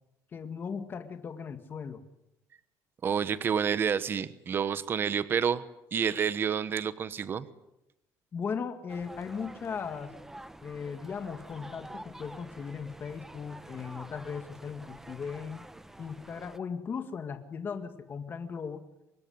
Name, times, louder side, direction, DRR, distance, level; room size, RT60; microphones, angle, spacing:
voice 1, 0.3-2.0 8.3-10.2 10.6-15.7 16.0-18.9, left 6 dB, 30° left, 8 dB, 2.0 m, -37 dB
voice 2, 3.0-5.6 5.9-7.5, right 7 dB, 35° right, 15 dB, 1.1 m, -29 dB
sound 1, 8.9-16.6, right 1 dB, 5° right, 1.0 m, -48 dB
24.5 x 21.0 x 9.7 m, 0.88 s
cardioid pair, 155°, 7 cm